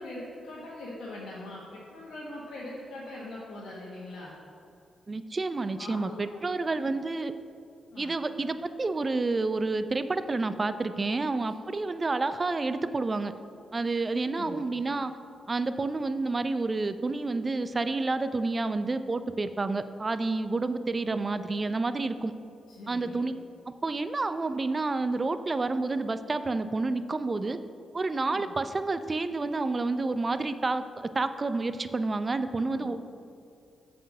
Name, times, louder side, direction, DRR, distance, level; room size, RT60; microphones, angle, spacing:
voice 1, 0.0-4.3 5.8-6.9 7.9-8.1 14.2-14.6 22.7-23.2 28.3-28.5 32.7-32.9, left 1 dB, 75° left, -7 dB, 1.3 m, -42 dB
voice 2, 5.1-7.3 8.0-13.3 13.7-15.1 15.5-22.3 22.9-23.3 23.7-27.6 27.9-33.0, right 3 dB, 35° right, 12 dB, 0.4 m, -29 dB
7.7 x 4.3 x 6.2 m, 2.5 s
supercardioid pair, 55°, 0 cm